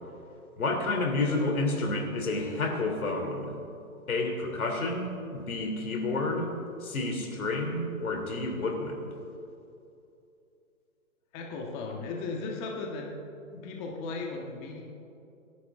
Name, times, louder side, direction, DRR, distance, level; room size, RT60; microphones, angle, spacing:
voice 1, 0.6-3.5 4.1-6.5 6.8-9.1, left 2 dB, 85° left, 2 dB, 3.5 m, -30 dB
voice 2, 11.3-13.1 13.5-14.8, left 3 dB, 25° left, 0 dB, 1.6 m, -36 dB
26.5 x 11.5 x 3.7 m, 2.7 s
hypercardioid pair, 155°, 42 cm